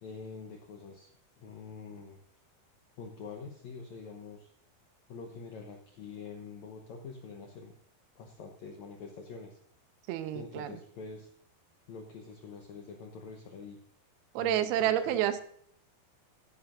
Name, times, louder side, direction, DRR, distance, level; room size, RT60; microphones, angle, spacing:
voice 1, 0.0-2.2 3.0-4.5 5.1-7.7 8.2-9.6 10.3-11.3 11.9-13.8 14.4-15.2, left 5 dB, 80° left, 3 dB, 1.6 m, -45 dB
voice 2, 10.1-10.8 14.4-15.4, right 11 dB, 90° right, 10 dB, 2.6 m, -29 dB
15.5 x 11.5 x 2.5 m, 0.62 s
omnidirectional pair, 4.5 m